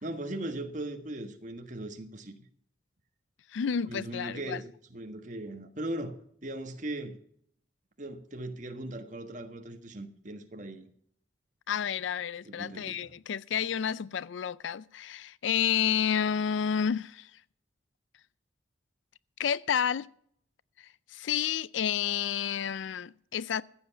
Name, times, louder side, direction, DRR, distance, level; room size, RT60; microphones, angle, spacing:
voice 1, 0.0-2.3 3.9-7.2 8.0-10.9 12.4-13.1, right 1 dB, 45° right, 1.5 m, -39 dB
voice 2, 3.5-4.6 11.7-17.4 19.4-20.1 20.8-23.6, left 8 dB, 85° left, 0.4 m, -30 dB
15.0 x 8.0 x 7.0 m
head